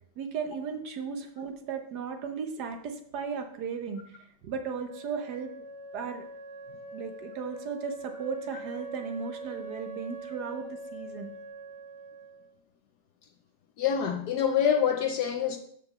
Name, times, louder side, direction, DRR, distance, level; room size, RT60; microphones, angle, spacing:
voice 1, 0.2-4.2 4.4-5.5 5.9-6.2 6.9-11.3, right 5 dB, 60° right, 1.2 m, -36 dB
Wind instrument woodwind instrument, 4.8-12.6, right 3 dB, 85° right, 0.6 m, -43 dB
voice 2, 13.8-15.6, left 8 dB, 70° left, 0.9 m, -26 dB
6.0 x 5.1 x 6.7 m
omnidirectional pair, 2.3 m